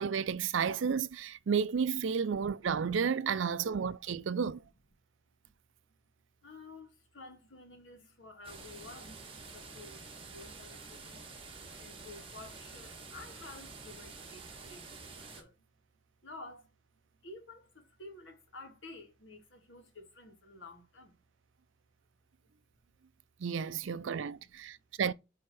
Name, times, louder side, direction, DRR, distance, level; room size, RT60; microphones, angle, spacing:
voice 1, 0.0-4.6 23.4-25.1, right 6 dB, 80° right, 0.5 m, -32 dB
voice 2, 6.4-11.3 11.8-15.7 16.2-16.7 17.2-21.2 23.7-23.9 24.3-24.6, left 2 dB, 75° left, 2.1 m, -52 dB
sound 1, 8.4-15.4, right 4 dB, 30° right, 1.8 m, -48 dB
8.8 x 3.6 x 4.7 m
head